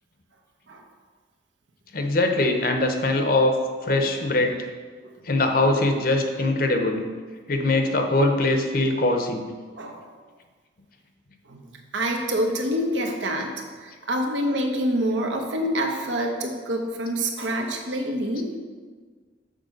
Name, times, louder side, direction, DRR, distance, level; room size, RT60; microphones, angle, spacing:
voice 1, 1.9-3.5 3.8-4.7 5.2-7.0 7.5-9.4, left 2 dB, 50° left, 5 dB, 0.8 m, -22 dB
voice 2, 11.4-18.5, equal, 90° right, 2 dB, 1.1 m, -27 dB
6.5 x 4.5 x 6.5 m, 1.5 s
head